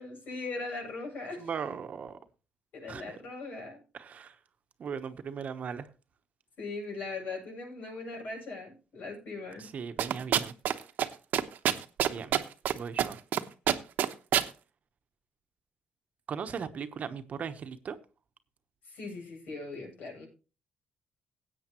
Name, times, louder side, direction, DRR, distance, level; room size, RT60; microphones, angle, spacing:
voice 1, 0.0-1.5 2.7-3.8 6.6-9.7 18.9-20.3, left 3 dB, 65° left, 1 dB, 7.7 m, -39 dB
voice 2, 1.4-2.2 2.9-3.2 3.9-4.4 4.8-5.9 9.6-10.5 12.1-12.4 12.7-13.2 16.3-18.0, right 6 dB, 50° right, 9 dB, 1.0 m, -38 dB
sound 1, 10.0-10.7 11.0-11.1 11.3-12.7 13.0-13.4 13.7-14.5, right 10 dB, 75° right, 1.0 m, -25 dB
16.5 x 8.5 x 3.0 m, 0.33 s
cardioid pair, 95°, 3 cm